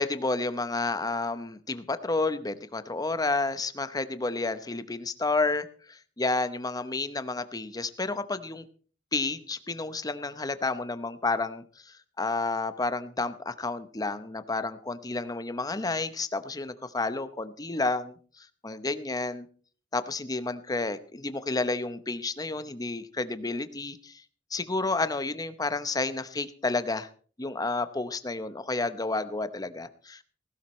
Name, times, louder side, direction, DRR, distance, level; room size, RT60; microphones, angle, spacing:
voice 1, 0.0-8.6 9.1-19.5 19.9-24.2 24.5-27.1 27.4-30.2, left 3 dB, 20° left, 12 dB, 0.8 m, -31 dB
17.0 x 15.5 x 3.1 m, 0.42 s
head